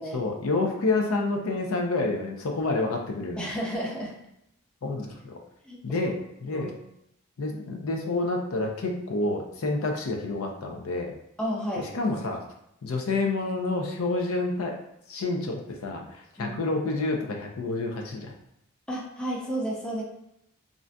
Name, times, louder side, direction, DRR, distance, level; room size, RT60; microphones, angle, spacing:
voice 1, 0.1-3.5 4.8-5.4 5.8-6.2 6.4-6.7 7.4-11.1 11.9-12.4 12.8-14.8 15.1-18.3, left 2 dB, 70° left, 2 dB, 0.5 m, -28 dB
voice 2, 3.4-4.1 5.6-6.1 6.5-6.8 11.4-11.9 16.4-16.6 18.9-20.0, right 1 dB, 5° left, -3 dB, 0.4 m, -32 dB
3.8 x 2.4 x 2.2 m, 0.78 s
head